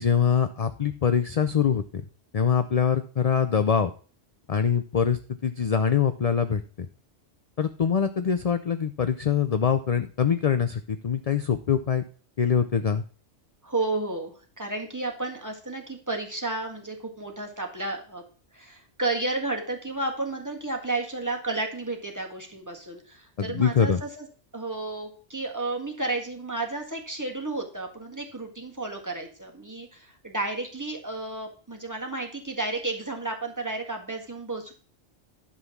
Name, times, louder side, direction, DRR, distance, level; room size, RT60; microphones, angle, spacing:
voice 1, 0.0-1.8 2.3-3.9 4.5-6.6 7.6-12.0 12.4-13.0 23.4-24.0, left 7 dB, 45° left, 10 dB, 0.5 m, -24 dB
voice 2, 13.6-18.2 18.5-24.3 24.5-34.7, right 2 dB, 15° right, 1 dB, 1.7 m, -32 dB
11.0 x 3.9 x 7.1 m, 0.40 s
omnidirectional pair, 1.2 m